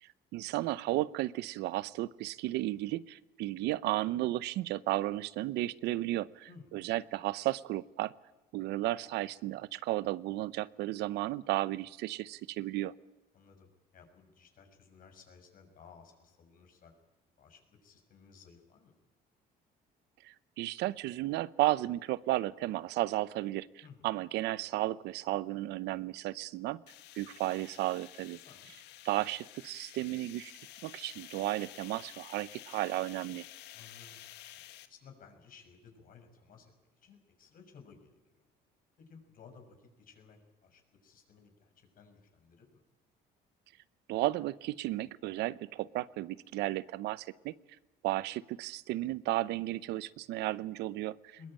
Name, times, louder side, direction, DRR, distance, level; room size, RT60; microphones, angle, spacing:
voice 1, 0.0-8.1 8.5-12.9 20.2-23.7 24.0-26.8 27.1-28.4 29.0-30.5 30.8-33.4 44.1-47.5 48.0-51.5, right 16 dB, 85° right, 19 dB, 0.8 m, -34 dB
voice 2, 13.3-16.9 17.4-18.9 23.8-24.0 28.3-28.7 33.7-34.2 34.5-38.2 39.0-42.8 51.4-51.5, left 5 dB, 55° left, 4 dB, 6.2 m, -57 dB
sound 1, 26.9-34.9, left 14 dB, 85° left, 1.5 m, -51 dB
21.5 x 20.5 x 8.9 m, 1.1 s
cardioid pair, 110°, 17 cm